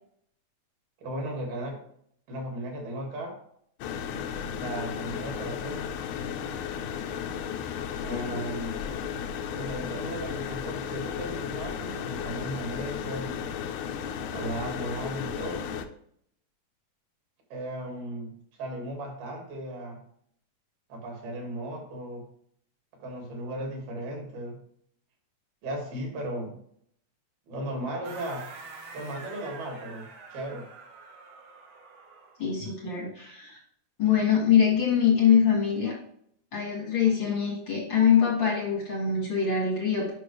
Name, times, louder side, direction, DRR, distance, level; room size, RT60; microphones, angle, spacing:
voice 1, 1.0-1.8 2.3-3.4 4.6-5.9 8.0-8.8 9.6-13.5 14.3-15.6 17.5-18.3 18.6-20.0 20.9-22.3 23.0-24.6 25.6-26.6 27.5-28.5 28.9-30.7, right 1 dB, 65° right, 1 dB, 3.8 m, -36 dB
sound 1, 3.8-15.9, left 7 dB, 80° left, 2.2 m, -34 dB
sound 2, 28.0-32.4, right 4 dB, 80° right, 1.4 m, -46 dB
voice 2, 32.4-33.6 34.0-36.0 36.5-40.1, left 7 dB, 55° left, -2 dB, 1.3 m, -24 dB
9.3 x 5.8 x 3.3 m, 0.66 s
omnidirectional pair, 4.9 m